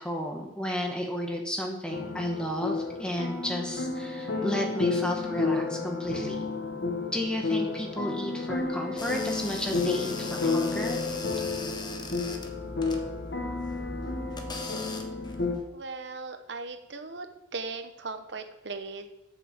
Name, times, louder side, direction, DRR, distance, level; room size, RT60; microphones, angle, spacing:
voice 1, 0.0-6.5 7.1-11.0, equal, 5° left, 1 dB, 1.5 m, -33 dB
sound 1, 1.9-15.6, left 4 dB, 60° left, 1.4 m, -31 dB
sound 2, 9.0-15.6, left 2 dB, 25° left, 1.0 m, -40 dB
voice 2, 15.7-17.3 17.5-19.1, right 3 dB, 65° right, 8 dB, 1.1 m, -38 dB
8.4 x 6.7 x 6.8 m, 0.89 s
head